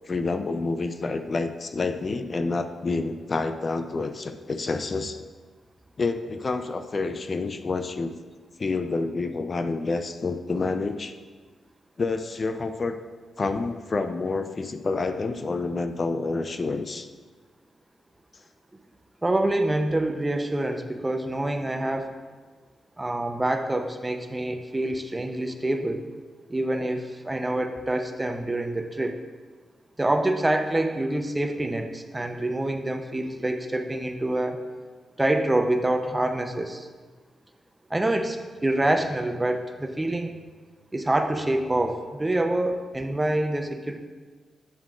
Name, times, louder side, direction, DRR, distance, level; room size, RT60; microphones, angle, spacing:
voice 1, 0.1-5.2 6.0-8.1 8.6-11.1 12.0-13.0 13.4-17.1, left 3 dB, 45° left, 8 dB, 0.5 m, -28 dB
voice 2, 19.2-22.1 23.0-26.0 26.5-29.2 30.0-34.7 35.2-36.9 37.9-40.4 40.9-44.0, right 1 dB, 20° right, 7 dB, 0.7 m, -26 dB
8.5 x 7.2 x 2.5 m, 1.5 s
supercardioid pair, 50°, 0 cm